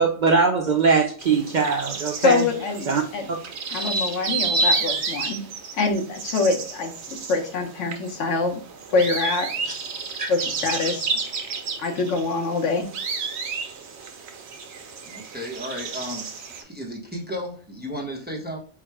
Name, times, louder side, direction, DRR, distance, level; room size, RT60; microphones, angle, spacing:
voice 1, 0.0-2.4 2.9-3.0 3.3-3.4 9.6-9.7 10.2-10.3, right 5 dB, 55° right, 0.5 m, -21 dB
sound 1, 1.2-16.6, right 3 dB, 70° right, 0.9 m, -30 dB
voice 2, 2.2-3.3 3.7-5.4 5.8-8.6 8.9-9.5 10.3-11.1 11.8-12.9, left 3 dB, 85° left, 1.2 m, -24 dB
voice 3, 15.1-18.6, equal, 10° right, 0.6 m, -34 dB
4.6 x 2.1 x 4.6 m
omnidirectional pair, 1.2 m